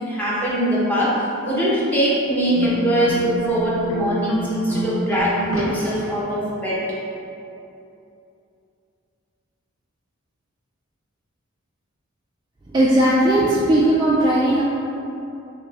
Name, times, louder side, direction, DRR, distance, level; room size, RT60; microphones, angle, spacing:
voice 1, 0.1-6.8, equal, 10° left, -8 dB, 0.7 m, -22 dB
sound 1, 2.5-6.5, right 1 dB, 80° left, 0.6 m, -29 dB
voice 2, 12.7-14.6, right 1 dB, 20° right, -6 dB, 0.3 m, -17 dB
5.8 x 2.2 x 3.2 m, 2.7 s
head